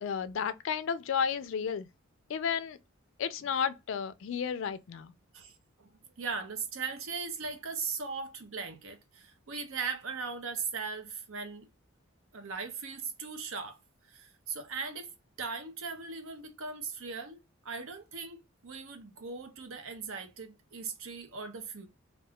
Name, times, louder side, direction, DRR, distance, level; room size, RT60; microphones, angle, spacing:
voice 1, 0.0-1.9 2.3-2.8 3.2-5.1, left 7 dB, 65° left, 0.3 m, -32 dB
voice 2, 5.3-5.9 6.2-11.7 12.3-13.8 14.1-15.1 15.4-21.9, right 5 dB, 75° right, 0.6 m, -39 dB
2.4 x 2.3 x 3.4 m
head